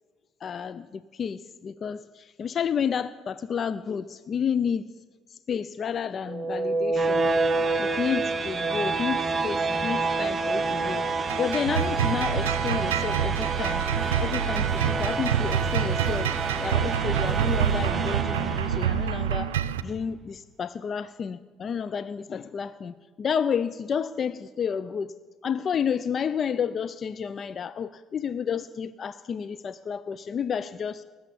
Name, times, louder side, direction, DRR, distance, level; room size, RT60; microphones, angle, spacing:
voice 1, 0.4-4.9 5.3-7.3 7.8-13.8 14.2-16.3 16.6-25.2 25.4-31.0, left 7 dB, 45° left, 15 dB, 0.4 m, -31 dB
sound 1, 6.3-19.2, right 4 dB, 35° right, 0.8 m, -28 dB
sound 2, 11.1-19.8, right 9 dB, 85° right, 0.5 m, -27 dB
19.5 x 7.0 x 8.5 m, 1.5 s
hypercardioid pair, 60°, 0 cm